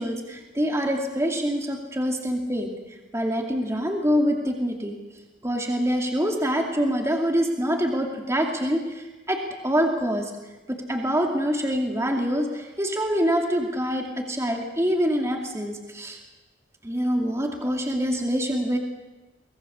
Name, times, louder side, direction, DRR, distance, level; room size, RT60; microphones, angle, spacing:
voice 1, 0.0-2.7 3.1-5.0 5.4-10.3 10.7-16.2 16.8-18.8, equal, 15° right, 2 dB, 2.5 m, -25 dB
24.0 x 19.5 x 7.2 m, 1.1 s
head